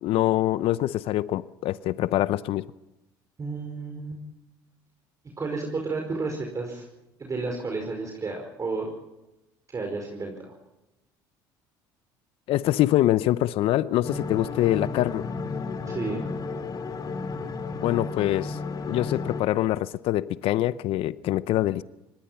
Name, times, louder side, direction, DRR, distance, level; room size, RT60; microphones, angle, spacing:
voice 1, 0.0-2.6 12.5-15.3 17.8-18.6 18.9-21.8, left 14 dB, 60° left, 0.7 m, -24 dB
voice 2, 3.4-4.2 5.4-6.8 7.2-8.9 9.7-10.5 15.9-16.3, right 3 dB, 30° right, 5.1 m, -32 dB
sound 1, 14.0-19.4, left 4 dB, 40° left, 2.7 m, -33 dB
25.5 x 20.0 x 5.8 m
supercardioid pair, 75°, 11 cm